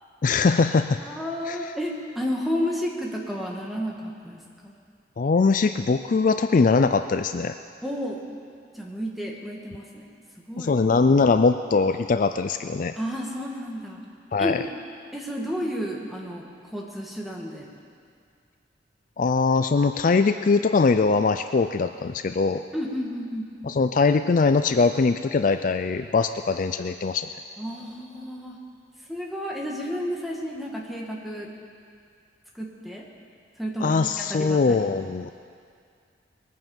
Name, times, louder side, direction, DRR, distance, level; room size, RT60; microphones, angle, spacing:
voice 1, 0.2-1.0 1.5-1.6 5.2-7.5 10.6-12.9 14.3-14.6 19.2-22.6 23.6-27.3 33.8-35.3, left 4 dB, 45° left, 9 dB, 0.4 m, -21 dB
voice 2, 1.0-4.7 7.8-8.2 8.7-10.1 10.5-10.7 13.0-14.0 14.4-14.6 15.1-17.7 22.7-23.5 27.6-28.6 29.1-31.5 32.6-33.0 33.6-34.8, equal, ahead, -2 dB, 1.8 m, -31 dB
21.0 x 9.3 x 7.2 m, 2.2 s
head